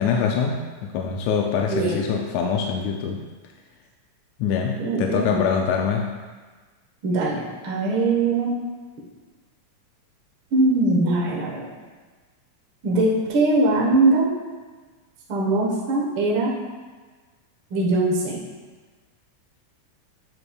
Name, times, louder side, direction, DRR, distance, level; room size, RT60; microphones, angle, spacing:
voice 1, 0.0-3.2 4.4-6.1, left 6 dB, 80° left, 1 dB, 1.8 m, -24 dB
voice 2, 1.7-2.0 4.7-5.4 7.0-8.6 10.5-11.7 12.8-14.3 15.3-16.5 17.7-18.4, right 2 dB, 55° right, -4 dB, 1.6 m, -21 dB
8.6 x 6.5 x 2.3 m, 1.4 s
omnidirectional pair, 3.4 m